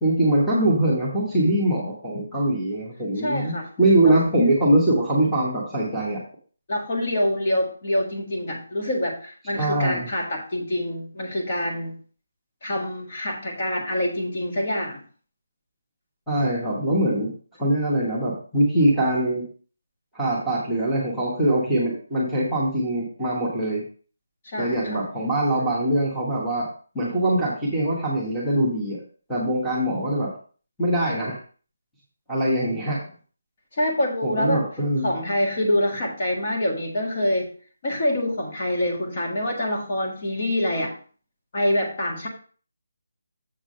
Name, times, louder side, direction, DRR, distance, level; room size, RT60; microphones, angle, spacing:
voice 1, 0.0-6.2 9.5-10.1 16.3-17.3 17.6-19.4 20.1-23.8 24.6-26.6 26.9-29.0 29.3-30.3 30.8-31.4 32.3-33.0 34.2-35.1, right 1 dB, ahead, -10 dB, 1.3 m, -22 dB
voice 2, 3.2-3.7 4.0-4.2 6.7-12.0 12.6-15.0 24.4-25.0 33.7-34.6 35.0-37.5 37.8-40.9 41.5-42.3, left 1 dB, 30° left, -1 dB, 1.6 m, -26 dB
7.4 x 3.7 x 6.4 m, 0.41 s
hypercardioid pair, 175°, 0 cm